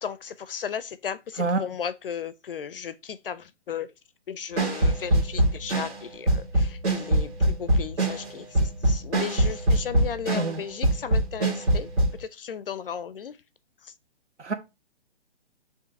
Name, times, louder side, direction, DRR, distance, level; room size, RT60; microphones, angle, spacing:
voice 1, 0.0-3.9 4.3-11.9 12.2-13.3, left 8 dB, 55° left, 0.4 m, -35 dB
voice 2, 1.4-1.6 10.3-10.6 14.4-14.5, right 3 dB, 90° right, 1.0 m, -26 dB
sound 1, 4.6-10.6 10.8-12.2, right 1 dB, 75° right, 2.1 m, -23 dB
6.6 x 2.6 x 2.6 m
figure-of-eight pair, 140°, 34 cm